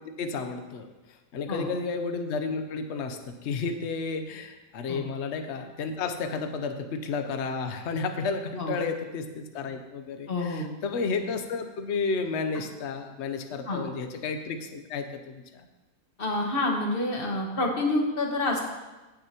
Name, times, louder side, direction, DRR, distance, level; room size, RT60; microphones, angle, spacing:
voice 1, 0.2-0.9 1.3-15.6, left 4 dB, 55° left, 6 dB, 1.0 m, -32 dB
voice 2, 10.3-10.7 13.7-13.8 16.2-18.6, left 2 dB, 40° left, 0 dB, 1.7 m, -28 dB
17.0 x 6.5 x 3.0 m, 1.1 s
omnidirectional pair, 1.5 m